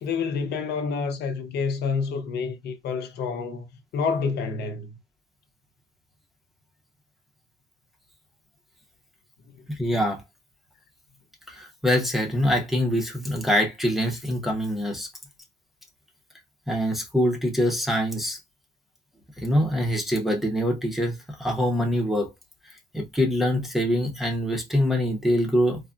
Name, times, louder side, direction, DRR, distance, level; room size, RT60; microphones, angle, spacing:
voice 1, 0.0-3.7 3.9-5.0, left 5 dB, 65° left, 0.6 m, -28 dB
voice 2, 9.8-10.2 11.5-15.1 16.7-18.4 19.4-22.3 22.9-25.8, equal, ahead, 0.6 m, -24 dB
3.4 x 2.1 x 2.4 m
cardioid pair, 150°, 18 cm